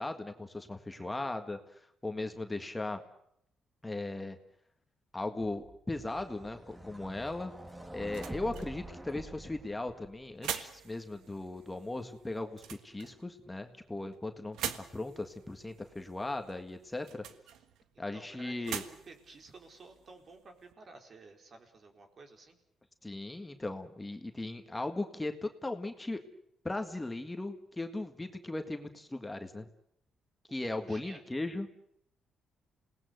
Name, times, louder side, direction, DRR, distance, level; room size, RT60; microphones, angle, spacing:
voice 1, 0.0-3.0 3.8-4.4 5.1-7.5 7.9-17.2 18.0-18.8 23.0-26.2 26.6-29.7 30.5-31.7, left 2 dB, 15° left, 6 dB, 1.7 m, -38 dB
sound 1, 5.6-10.3, right 1 dB, 15° right, 2.0 m, -47 dB
sound 2, 7.3-20.7, right 9 dB, 85° right, 1.5 m, -46 dB
voice 2, 17.9-22.6 30.8-31.2, right 3 dB, 45° right, 4 dB, 4.3 m, -54 dB
28.0 x 18.5 x 8.0 m, 0.74 s
cardioid pair, 90°, 0 cm